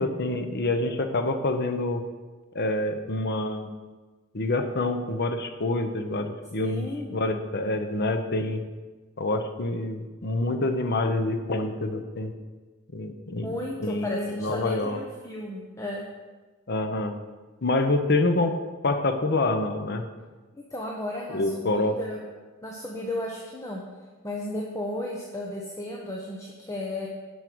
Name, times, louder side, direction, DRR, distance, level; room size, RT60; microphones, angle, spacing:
voice 1, 0.0-2.0 2.5-3.7 4.3-8.6 9.2-12.3 12.9-13.5 13.8-15.0 16.7-17.1 17.6-18.6 18.8-20.0 21.3-22.0, left 2 dB, 50° left, 7 dB, 0.9 m, -27 dB
voice 2, 6.6-7.2 13.4-16.1 20.5-22.2 22.6-23.8 24.2-27.1, left 1 dB, 15° left, -2 dB, 1.0 m, -34 dB
11.0 x 5.4 x 6.2 m, 1.3 s
head